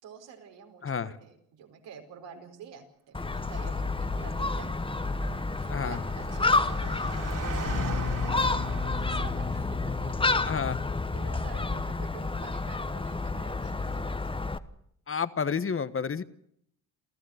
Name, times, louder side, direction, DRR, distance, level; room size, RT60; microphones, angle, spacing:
voice 1, 0.0-4.7 5.8-14.3, right 7 dB, 75° right, 3 dB, 5.0 m, -49 dB
Gull seagull, 3.1-14.6, left 3 dB, 10° left, 1.2 m, -30 dB
Engine, 4.2-9.7, right 6 dB, 45° right, 4.1 m, -42 dB
voice 2, 5.7-6.0 10.4-10.8 15.1-16.2, left 6 dB, 30° left, 14 dB, 1.3 m, -30 dB
Bass guitar, 7.7-13.9, left 7 dB, 55° left, 4.3 m, -37 dB
28.5 x 14.5 x 6.5 m, 0.71 s
supercardioid pair, 75°, 43 cm